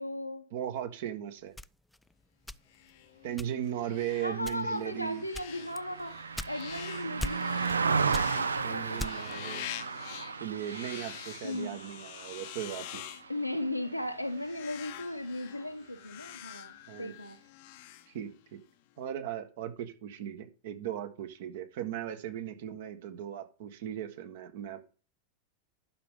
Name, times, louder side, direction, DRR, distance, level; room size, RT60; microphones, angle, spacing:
voice 1, 0.0-0.5 4.2-6.2 6.5-7.8 8.3-9.4 11.4-11.7 13.3-16.7 17.0-17.4, left 1 dB, 90° left, 7 dB, 1.1 m, -36 dB
voice 2, 0.5-1.5 3.2-5.2 8.6-9.7 10.4-13.0 16.9-17.1 18.1-18.6 19.0-24.9, right 10 dB, 55° right, 8 dB, 1.6 m, -37 dB
sound 1, 1.6-2.9 3.4-3.8 4.4-4.9 5.3-6.9 7.2-7.8 8.1-9.4, left 1 dB, 5° left, 0.3 m, -40 dB
sound 2, 2.7-18.6, left 15 dB, 50° left, 0.8 m, -47 dB
Car passing by, 4.3-13.9 14.2-14.5, right 5 dB, 75° right, 0.6 m, -34 dB
11.5 x 5.9 x 3.8 m, 0.36 s
figure-of-eight pair, 90°, 0 cm